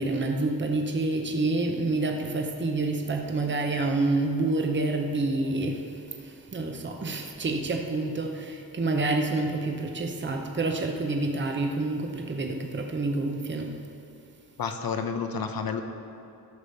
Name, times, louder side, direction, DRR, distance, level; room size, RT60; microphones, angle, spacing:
voice 1, 0.0-13.8, right 2 dB, 30° right, 3 dB, 0.9 m, -28 dB
voice 2, 14.6-15.8, left 6 dB, 75° left, 7 dB, 0.9 m, -30 dB
13.0 x 5.1 x 6.8 m, 2.6 s
wide cardioid pair, 120°, 36 cm